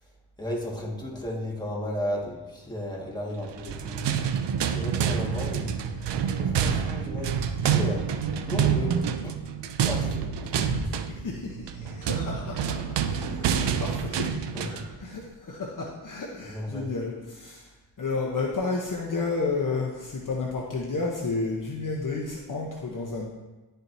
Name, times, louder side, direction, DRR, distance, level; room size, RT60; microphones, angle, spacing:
voice 1, 0.4-4.1 4.7-8.1 8.4-9.4 9.8-10.9 11.8-11.9 12.8-12.9 14.5-14.9 16.5-16.9, left 1 dB, 10° left, -3 dB, 1.7 m, -34 dB
sound 1, 3.5-14.9, right 7 dB, 70° right, 0.6 m, -27 dB
voice 2, 10.8-17.7 18.0-23.3, left 3 dB, 45° left, -1 dB, 0.9 m, -32 dB
11.0 x 4.5 x 2.7 m, 1.2 s
cardioid pair, 70°, 44 cm